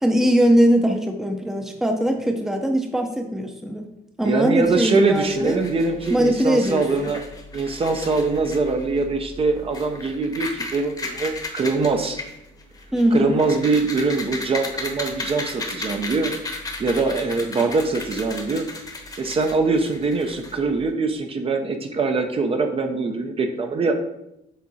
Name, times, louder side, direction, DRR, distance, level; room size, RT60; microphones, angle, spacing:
voice 1, 0.0-3.9 4.2-5.6 6.1-6.9 12.9-13.4, equal, 5° right, 4 dB, 0.7 m, -20 dB
voice 2, 4.2-7.2 7.5-12.2 13.1-16.3 16.8-18.7 19.2-24.0, right 3 dB, 35° right, 5 dB, 0.7 m, -23 dB
sound 1, 4.6-20.9, left 2 dB, 20° left, 1.1 m, -35 dB
7.5 x 3.5 x 4.2 m, 0.82 s
cardioid pair, 110°, 17 cm